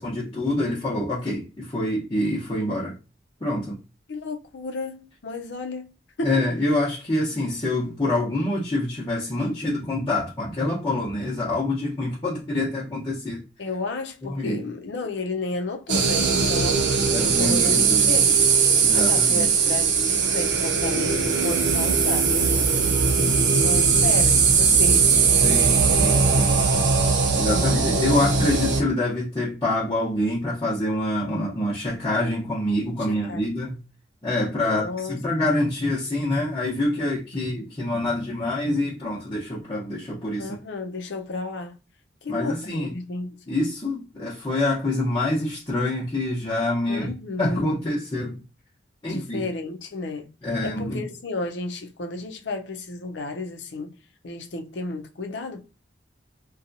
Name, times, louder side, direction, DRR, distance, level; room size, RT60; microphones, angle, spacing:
voice 1, 0.0-3.0 3.4-3.8 6.2-13.4 14.2-14.7 17.1-18.1 18.8-19.5 25.4-26.8 27.4-33.8 34.2-40.6 42.3-42.9 43.5-47.1 47.4-48.4 49.0-49.4 50.4-51.0, left 1 dB, 25° left, 0.8 m, -26 dB
voice 2, 4.1-6.4 13.6-18.4 18.9-22.9 23.5-25.1 25.4-25.5 27.4-28.4 33.0-33.5 34.6-35.2 40.4-41.8 42.2-43.4 46.9-47.7 49.0-50.3 50.6-54.0 54.2-55.6, left 3 dB, 80° left, 0.6 m, -33 dB
sound 1, 15.9-28.8, right 5 dB, 85° right, 0.5 m, -20 dB
2.7 x 2.3 x 2.6 m
head